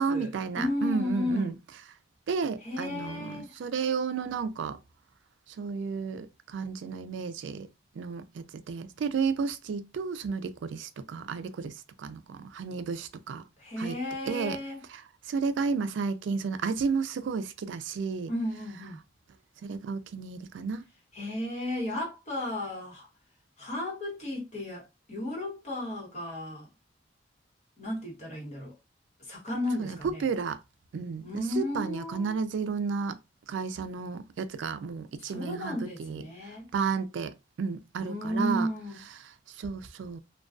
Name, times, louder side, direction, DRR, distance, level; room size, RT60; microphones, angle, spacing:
voice 1, 0.0-1.5 2.3-4.8 5.6-7.7 8.0-13.4 13.8-14.0 14.3-14.6 14.9-15.0 15.3-18.3 19.6-20.8 29.8-30.6 30.9-33.2 33.5-36.2 36.7-38.7 39.2-40.2, right 5 dB, 80° right, 0.3 m, -32 dB
voice 2, 0.6-1.5 2.6-3.6 13.6-14.8 18.3-19.0 21.1-23.1 23.6-26.7 27.8-28.7 29.2-30.2 31.2-32.4 35.2-36.7 38.0-39.0, left 1 dB, 35° left, 1.1 m, -34 dB
2.3 x 2.2 x 2.4 m
head